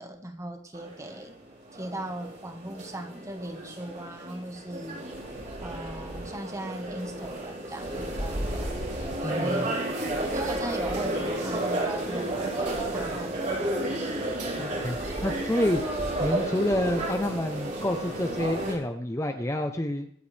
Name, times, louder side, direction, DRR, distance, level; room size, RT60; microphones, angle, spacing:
voice 1, 0.0-1.4 1.7-5.0 5.6-8.8 9.2-14.2, right 1 dB, 15° right, 6 dB, 1.3 m, -38 dB
sound 1, 0.7-18.7, right 1 dB, 40° right, 4.1 m, -32 dB
voice 2, 9.2-9.7 14.6-15.8 16.2-20.1, left 1 dB, 15° left, 5 dB, 0.7 m, -28 dB
24.5 x 8.3 x 3.4 m, 0.67 s
head